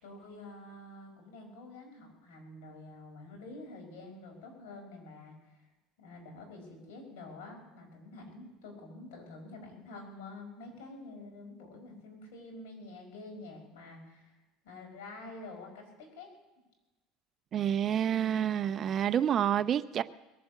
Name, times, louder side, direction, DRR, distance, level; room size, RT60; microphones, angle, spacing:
voice 1, 0.0-5.6 6.0-14.3 14.6-16.3, left 2 dB, 85° left, 5.3 m, -48 dB
voice 2, 17.5-20.0, right 9 dB, 40° right, 0.6 m, -28 dB
21.0 x 7.7 x 8.3 m
supercardioid pair, 120°, 0 cm